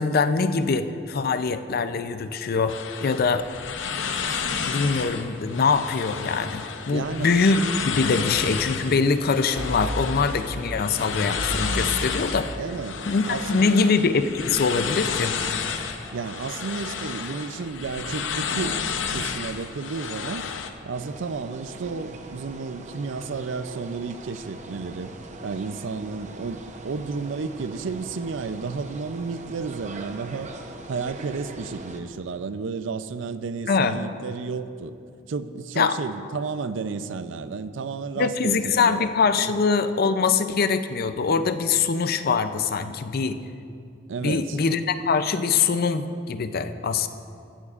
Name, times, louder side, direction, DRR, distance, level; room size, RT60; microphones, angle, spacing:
voice 1, 0.0-3.5 4.3-12.5 13.1-15.3 33.7-34.0 35.8-36.0 38.2-43.4 44.2-47.1, left 4 dB, 55° left, 10 dB, 0.5 m, -23 dB
sound 1, 2.7-20.7, left 6 dB, 90° left, 0.7 m, -31 dB
sound 2, 4.9-17.2 17.5-17.8, equal, 15° right, 2.8 m, -39 dB
voice 2, 6.9-7.3 12.6-13.9 16.1-18.8 19.1-20.5 20.8-25.1 25.4-30.5 30.9-35.0 35.3-39.1 44.1-44.6, right 4 dB, 90° right, 12 dB, 0.5 m, -32 dB
sound 3, 20.9-32.0, right 2 dB, 40° right, 0.8 m, -41 dB
15.0 x 13.0 x 2.5 m, 2.5 s
head